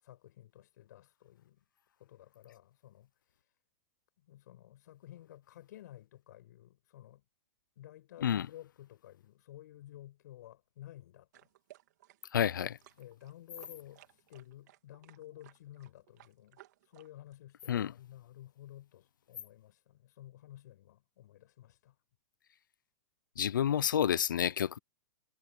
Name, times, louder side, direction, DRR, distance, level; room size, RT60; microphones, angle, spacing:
voice 1, 0.0-1.6 2.0-3.1 4.2-7.2 7.8-11.5 13.0-22.0, left 13 dB, 65° left, 7.9 m, -53 dB
sound 1, 11.3-17.3, right 15 dB, 60° right, 3.0 m, -60 dB
voice 2, 12.3-12.8 17.7-17.9 23.4-24.8, left 9 dB, 90° left, 0.7 m, -29 dB
hypercardioid pair, 140°, 10 cm